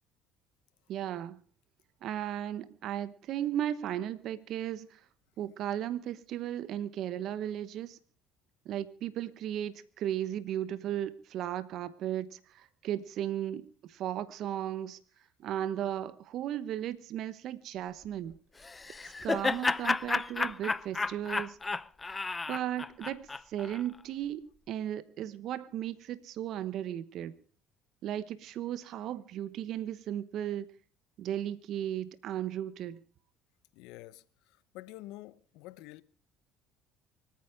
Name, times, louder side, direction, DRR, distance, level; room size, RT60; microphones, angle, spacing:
voice 1, 0.9-1.4 2.0-5.0 5.4-8.0 8.6-15.0 15.4-18.3 19.2-21.6 22.5-27.3 28.0-30.7 31.2-33.0, right 11 dB, 65° right, 1.0 m, -35 dB
Laughter, 18.6-23.8, left 3 dB, 20° left, 0.6 m, -32 dB
voice 2, 33.7-36.0, left 17 dB, 75° left, 0.8 m, -48 dB
25.0 x 9.4 x 4.9 m
supercardioid pair, 80°, 0 cm